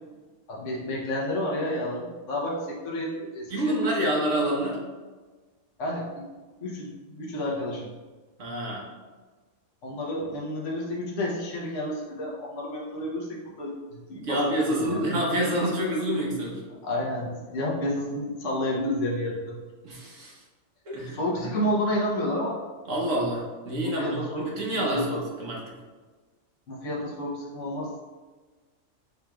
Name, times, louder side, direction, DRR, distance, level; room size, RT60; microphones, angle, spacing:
voice 1, 0.5-3.9 5.8-6.2 6.6-7.9 9.8-15.0 16.8-19.6 21.1-22.6 23.8-25.2 26.7-28.0, left 1 dB, 70° left, -3 dB, 1.2 m, -30 dB
voice 2, 3.5-4.8 8.4-8.9 14.1-16.6 19.8-20.4 20.9-21.5 22.9-25.7, right 1 dB, 75° right, -3 dB, 1.4 m, -28 dB
6.6 x 3.0 x 2.3 m, 1.3 s
omnidirectional pair, 1.3 m